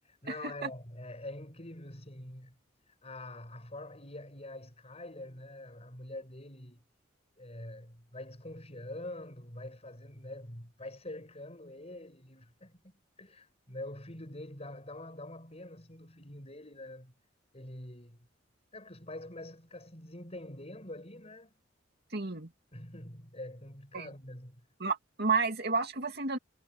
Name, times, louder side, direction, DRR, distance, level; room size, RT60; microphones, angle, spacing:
voice 1, 0.0-2.6 2.9-6.8 7.4-17.1 17.5-18.2 18.7-21.5 22.7-24.6, left 1 dB, 30° left, 7.5 m, -45 dB
voice 2, 22.1-22.5 23.9-24.1 24.8-26.4, right 4 dB, 55° right, 2.6 m, -31 dB
head